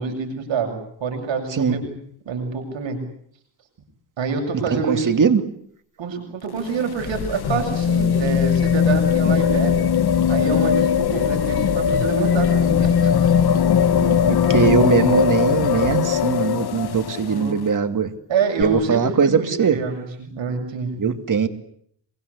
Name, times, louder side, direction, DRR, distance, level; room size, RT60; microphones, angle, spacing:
voice 1, 0.0-2.0 2.3-3.0 4.2-5.1 6.0-9.8 10.3-13.1 17.3-17.6 18.3-21.0, right 5 dB, 80° right, 4 dB, 7.5 m, -27 dB
voice 2, 4.7-5.4 14.0-18.1 18.6-19.8 21.0-21.5, right 6 dB, 45° right, 9 dB, 2.6 m, -20 dB
sound 1, 6.4-17.4 18.6-18.7, left 8 dB, 55° left, 1.4 m, -19 dB
26.0 x 24.0 x 8.5 m, 0.67 s
cardioid pair, 125°, 44 cm